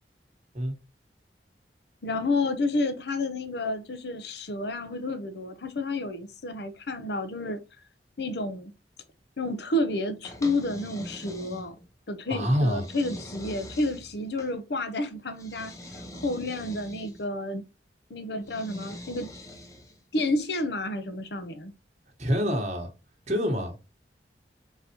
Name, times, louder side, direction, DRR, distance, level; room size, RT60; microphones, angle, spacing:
voice 1, 2.0-7.6 8.2-8.7 9.4-11.8 12.1-17.6 18.1-19.3 20.1-21.7, left 2 dB, 70° left, 0.8 m, -30 dB
sound 1, 10.2-11.9 12.5-14.5 15.4-17.2 18.4-20.0, left 1 dB, 20° left, 0.7 m, -43 dB
voice 2, 12.3-12.8 22.2-22.9 23.3-23.8, equal, 40° right, 1.1 m, -26 dB
4.1 x 4.0 x 2.9 m
head